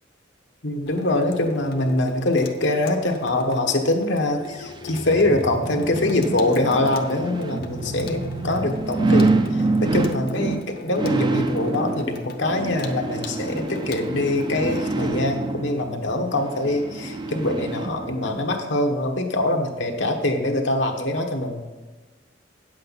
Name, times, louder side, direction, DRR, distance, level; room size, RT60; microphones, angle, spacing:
voice 1, 0.6-21.6, left 2 dB, 75° left, 3 dB, 1.2 m, -24 dB
Water tap faucet / Sink (filling or washing), 0.9-15.1, left 3 dB, 55° left, 0.9 m, -40 dB
sound 1, 4.5-18.4 18.9-19.0, right 3 dB, 25° right, 0.4 m, -27 dB
9.3 x 7.6 x 4.1 m, 1.2 s
head